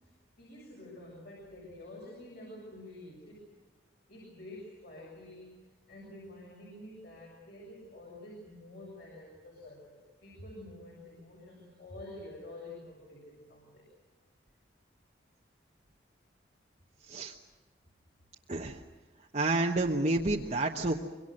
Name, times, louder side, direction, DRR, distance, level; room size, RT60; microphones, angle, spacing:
voice 1, 0.4-3.5 4.1-5.6 5.9-13.8, left 1 dB, 55° left, -3 dB, 7.1 m, -48 dB
voice 2, 18.5-18.8 19.3-21.0, right 2 dB, 40° right, 0 dB, 1.1 m, -29 dB
25.5 x 23.5 x 6.6 m, 1.2 s
head